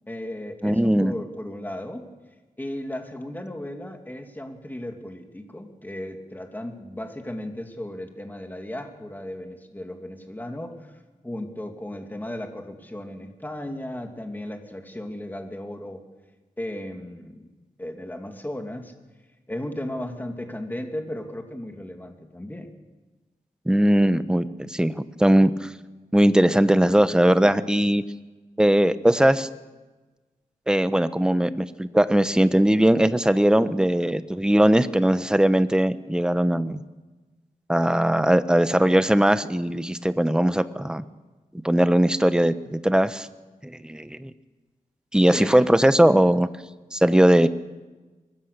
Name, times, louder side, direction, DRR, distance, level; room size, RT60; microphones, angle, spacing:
voice 1, 0.1-2.1 2.6-10.9 11.2-16.0 16.6-17.5 17.8-18.9 19.5-22.7 45.1-45.7, left 1 dB, 15° left, 4 dB, 2.5 m, -35 dB
voice 2, 0.6-1.1 23.7-25.7 26.1-28.0 28.6-29.5 30.7-36.8 37.7-41.0 41.6-43.3 43.6-44.3 45.1-46.5 46.9-47.5, right 1 dB, 5° right, 12 dB, 0.9 m, -20 dB
24.0 x 20.5 x 6.8 m, 1.2 s
wide cardioid pair, 110°, 14 cm